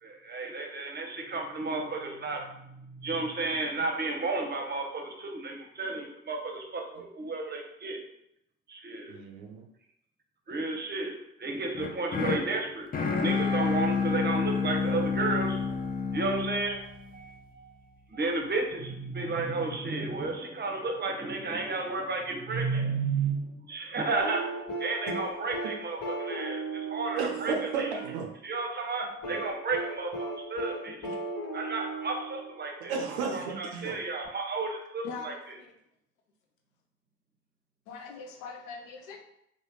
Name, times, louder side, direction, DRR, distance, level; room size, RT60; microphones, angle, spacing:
voice 1, 0.0-8.0 8.7-9.1 10.5-12.9 13.2-15.6 16.1-17.8 18.1-24.4 24.8-27.9 28.4-31.0 31.5-33.0 33.3-35.3, right 3 dB, 30° right, 1 dB, 0.8 m, -32 dB
voice 2, 9.1-9.7 25.1-25.2 27.1-28.3 31.0-31.2 32.9-34.0, right 5 dB, 90° right, 2 dB, 0.5 m, -34 dB
sound 1, 11.7-17.9, left 5 dB, 25° left, 0.5 m, -30 dB
sound 2, 24.2-28.3 29.2-32.8 34.2-34.3, right 3 dB, 60° left, 1.2 m, -36 dB
voice 3, 35.0-35.7 37.9-39.2, left 5 dB, 85° left, 3 dB, 0.5 m, -42 dB
3.1 x 2.1 x 2.9 m, 0.78 s
hypercardioid pair, 45°, 32 cm